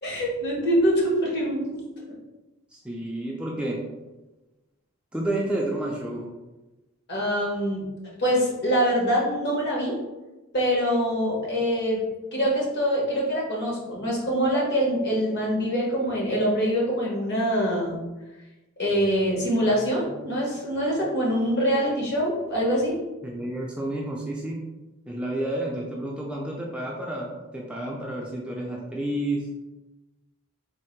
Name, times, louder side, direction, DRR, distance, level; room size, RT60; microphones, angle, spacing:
voice 1, 0.0-1.8 7.1-7.9 8.2-10.0 10.5-12.0 12.3-18.0 18.8-23.0, equal, 50° left, -3 dB, 1.2 m, -24 dB
voice 2, 2.7-3.8 5.1-6.3 23.2-24.6 25.1-29.5, right 1 dB, 5° right, -3 dB, 0.4 m, -30 dB
3.6 x 2.5 x 4.5 m, 1.1 s
head